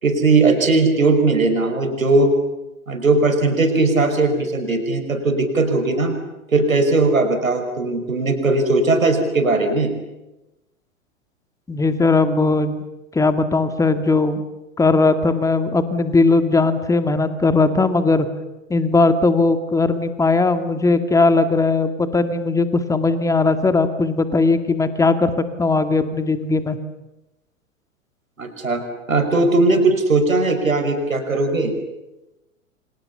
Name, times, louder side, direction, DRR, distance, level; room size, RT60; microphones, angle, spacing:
voice 1, 0.0-2.3 2.9-6.2 6.5-9.9 28.4-28.8 29.1-31.7, right 3 dB, 80° right, 7 dB, 5.6 m, -18 dB
voice 2, 11.7-12.8 13.1-14.4 14.8-18.3 18.7-25.3 25.6-26.8, left 3 dB, 10° left, 10 dB, 2.0 m, -18 dB
29.0 x 25.5 x 7.1 m, 0.98 s
figure-of-eight pair, 100°, 40 cm